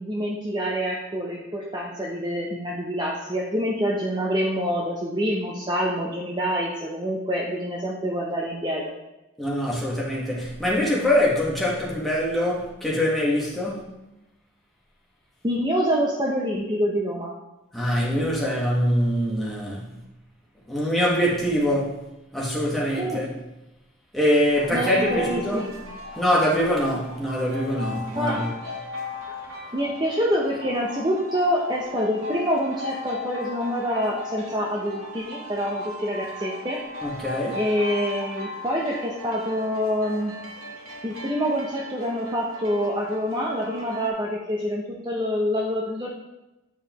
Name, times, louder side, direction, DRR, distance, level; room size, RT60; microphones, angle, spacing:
voice 1, 0.0-8.8 15.4-17.3 23.0-23.2 24.7-25.7 28.2-28.4 29.7-36.8 37.6-40.4 41.0-46.1, equal, 20° right, -3 dB, 0.6 m, -26 dB
voice 2, 9.4-13.9 17.7-19.9 20.7-22.0 22.3-23.3 24.1-25.7 26.1-28.5 37.0-37.6, equal, ahead, -6 dB, 1.3 m, -24 dB
sound 1, 24.6-44.1, left 3 dB, 75° right, 1.1 m, -38 dB
9.1 x 4.7 x 2.9 m, 0.98 s
head